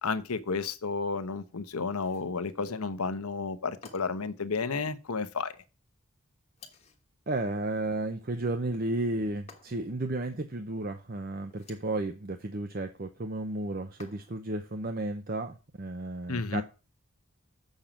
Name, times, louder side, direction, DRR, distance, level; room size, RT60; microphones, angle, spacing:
voice 1, 0.0-5.5 16.3-16.6, left 4 dB, 85° left, 1.0 m, -32 dB
sound 1, 1.9-2.4 3.8-4.3 6.6-7.1 9.5-10.0 11.4-12.0 14.0-14.5, left 5 dB, 30° left, 1.3 m, -54 dB
voice 2, 7.3-16.6, right 2 dB, 40° right, 0.7 m, -33 dB
7.4 x 6.5 x 5.1 m
head